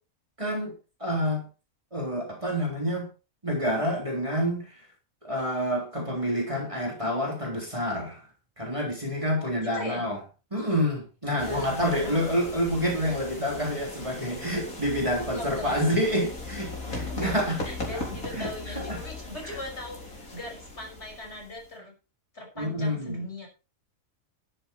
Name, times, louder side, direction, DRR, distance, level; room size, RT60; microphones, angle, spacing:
voice 1, 0.4-0.7 1.0-1.4 1.9-3.1 3.4-4.8 5.2-8.2 8.6-10.2 10.5-17.6 17.9-18.1 18.3-19.0 22.6-23.2, equal, 20° right, 0 dB, 3.7 m, -28 dB
voice 2, 9.4-10.0 11.3-12.4 13.4-13.5 15.1-15.9 16.8-21.9 22.3-23.5, left 1 dB, 50° left, 2 dB, 6.5 m, -39 dB
sound 1, 11.4-21.7, left 2 dB, 80° left, 4.6 m, -38 dB
13.0 x 11.0 x 4.4 m, 0.33 s
omnidirectional pair, 1.4 m